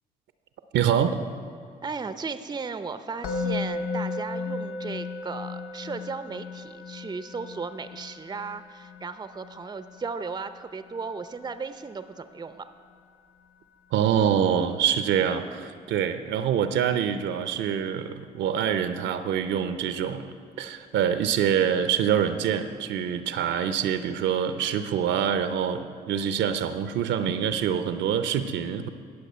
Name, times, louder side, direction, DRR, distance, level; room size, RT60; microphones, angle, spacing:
voice 1, 0.7-1.1 13.9-28.9, right 8 dB, 60° right, 10 dB, 0.7 m, -25 dB
voice 2, 1.8-12.6, right 4 dB, 20° right, 11 dB, 0.6 m, -36 dB
Musical instrument, 3.2-14.3, left 3 dB, 75° left, 0.9 m, -36 dB
18.0 x 6.6 x 4.4 m, 2.4 s
hypercardioid pair, 50°, 21 cm